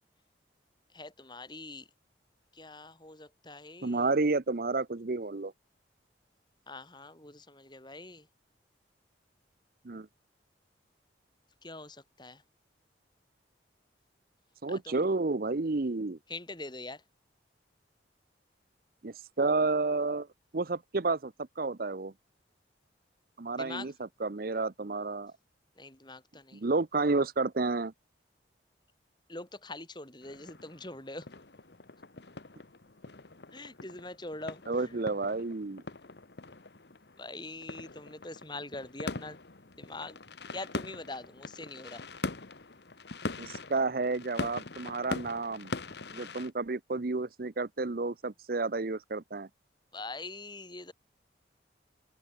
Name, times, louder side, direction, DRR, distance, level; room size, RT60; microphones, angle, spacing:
voice 1, 0.9-1.9 2.5-4.1 6.7-8.3 11.6-12.4 14.7-15.0 16.3-17.0 23.5-23.9 25.8-26.6 29.3-31.3 33.5-34.9 37.2-39.4 39.8-40.2 40.5-42.0 49.9-50.9, left 2 dB, 25° left, 5.9 m, -43 dB
voice 2, 3.8-5.5 9.8-10.1 14.6-16.2 19.0-20.3 20.5-22.1 23.4-25.3 26.5-27.9 34.7-35.8 43.4-45.7 46.1-49.5, right 3 dB, 50° right, 0.7 m, -31 dB
sound 1, 30.2-46.5, left 3 dB, 60° left, 1.2 m, -42 dB
head